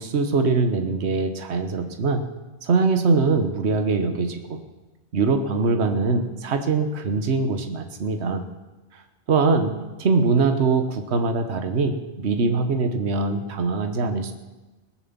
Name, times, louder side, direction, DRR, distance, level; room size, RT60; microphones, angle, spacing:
voice 1, 0.0-2.2 2.6-4.6 5.1-8.4 9.3-14.3, right 4 dB, 70° right, 7 dB, 1.4 m, -22 dB
20.0 x 7.3 x 7.2 m, 1.1 s
omnidirectional pair, 1.2 m